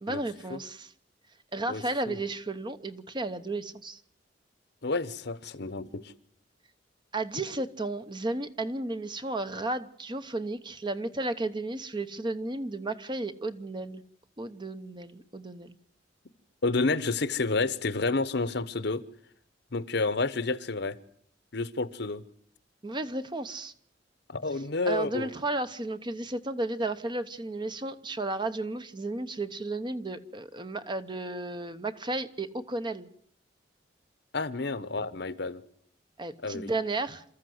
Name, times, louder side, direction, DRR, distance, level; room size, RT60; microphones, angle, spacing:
voice 1, 0.0-0.9 1.5-4.0 7.1-14.0 14.4-15.8 22.8-23.7 24.8-33.1 36.2-37.2, right 2 dB, 25° right, 1.0 m, -33 dB
voice 2, 1.7-2.2 4.8-6.1 16.6-19.0 19.7-21.0 21.5-22.2 24.3-25.3 34.3-35.6 36.4-36.7, left 3 dB, 65° left, 1.0 m, -30 dB
28.0 x 14.0 x 7.9 m
head